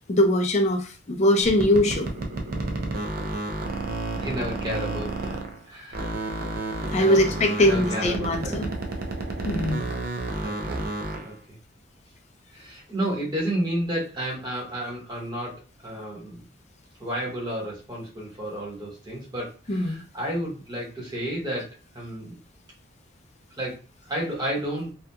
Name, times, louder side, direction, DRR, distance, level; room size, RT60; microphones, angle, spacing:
voice 1, 0.1-2.1 6.9-8.7 9.4-9.9 19.7-20.0, left 1 dB, 35° left, 5 dB, 0.4 m, -21 dB
sound 1, 1.4-5.6 5.9-11.3, right 2 dB, 50° right, 0.5 m, -31 dB
voice 2, 4.2-6.1 7.0-8.6 10.4-10.9 11.2-11.3 12.5-15.5 15.8-16.4 17.0-22.4 23.6-23.8 24.1-24.9, right 1 dB, 20° right, -5 dB, 1.1 m, -31 dB
2.8 x 2.3 x 2.3 m, 0.36 s
head